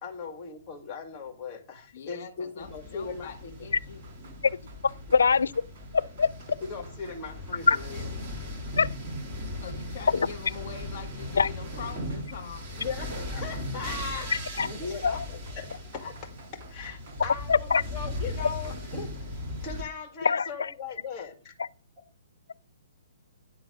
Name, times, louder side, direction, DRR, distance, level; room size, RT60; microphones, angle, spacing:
voice 1, 0.0-3.5 6.6-8.1 12.8-19.1 19.6-21.5, left 5 dB, 20° left, 2.1 m, -39 dB
voice 2, 1.9-4.0 9.6-12.6, left 6 dB, 50° left, 1.8 m, -43 dB
sound 1, 2.6-19.8, left 1 dB, 25° right, 3.1 m, -38 dB
sound 2, 4.0-7.9 8.2-8.3 9.1-9.2 10.1-13.2 14.3-14.7 15.5-18.7, right 4 dB, 45° right, 4.4 m, -55 dB
voice 3, 5.1-5.5 5.9-6.3 7.7-7.8 8.8-8.9 10.1-10.3 11.4-11.5 14.6-14.7 15.0-15.2 17.5-17.8 20.2-20.7, left 5 dB, 85° left, 0.4 m, -22 dB
10.5 x 3.9 x 6.3 m
hypercardioid pair, 150°, 0 cm